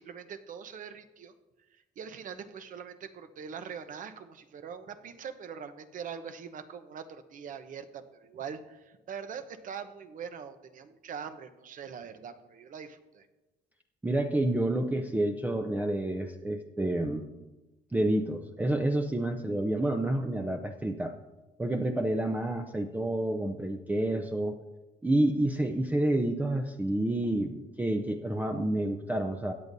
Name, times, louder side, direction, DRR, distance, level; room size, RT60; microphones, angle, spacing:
voice 1, 0.0-1.3 1.7-13.3, right 7 dB, 50° right, 9 dB, 0.9 m, -43 dB
voice 2, 14.0-17.2 17.9-21.1 21.6-24.6 25.0-29.5, right 1 dB, 10° right, 5 dB, 0.6 m, -29 dB
16.5 x 9.0 x 2.7 m, 1.1 s
cardioid pair, 110°, 17 cm